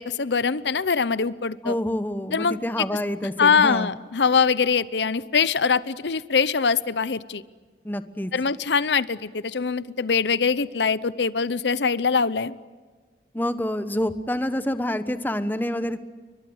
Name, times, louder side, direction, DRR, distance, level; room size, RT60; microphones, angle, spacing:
voice 1, 0.0-1.7 2.3-2.6 3.4-7.4 8.3-12.5, left 5 dB, 80° left, 17 dB, 0.8 m, -23 dB
voice 2, 1.6-3.9 7.8-8.3 13.3-16.0, left 1 dB, 10° left, 11 dB, 1.1 m, -27 dB
30.0 x 23.5 x 7.9 m, 1.5 s
head